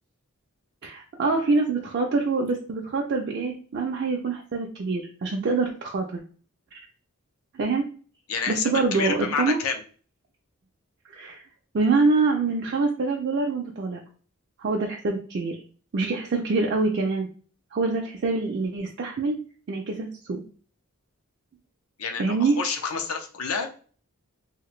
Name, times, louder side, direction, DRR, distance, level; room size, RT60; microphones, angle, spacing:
voice 1, 0.8-6.2 7.5-7.9 8.5-9.6 11.1-11.4 11.7-14.0 14.6-15.6 15.9-17.3 17.7-19.4 19.7-20.4 22.2-22.5, right 3 dB, 50° right, 0 dB, 0.4 m, -25 dB
voice 2, 8.3-9.8 22.0-23.7, left 5 dB, 85° left, 5 dB, 0.6 m, -29 dB
2.8 x 2.5 x 3.1 m, 0.41 s
head